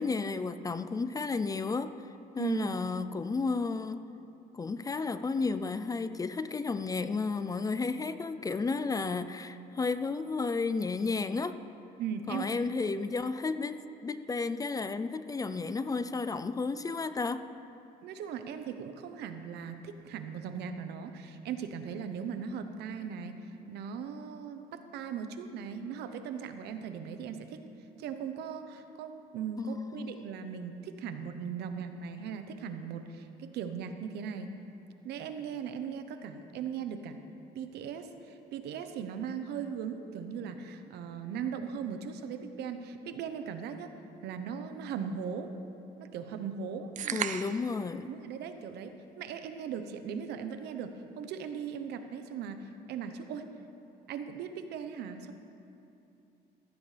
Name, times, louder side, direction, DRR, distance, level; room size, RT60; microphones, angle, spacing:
voice 1, 0.0-1.9 2.3-4.0 4.5-11.6 12.3-17.5 29.6-30.1 47.1-48.1, left 4 dB, 20° left, 12 dB, 0.4 m, -32 dB
voice 2, 2.4-2.7 12.0-12.7 18.0-23.3 23.7-27.6 28.0-34.5 35.0-37.2 37.5-43.9 44.2-45.5 46.0-47.4 48.1-48.9 49.2-50.9 51.2-53.4 54.1-55.3, right 7 dB, 75° right, 8 dB, 0.9 m, -38 dB
sound 1, 47.0-47.8, right 9 dB, 50° right, 0.5 m, -35 dB
16.0 x 14.5 x 3.4 m, 2.8 s
cardioid pair, 110°, 17 cm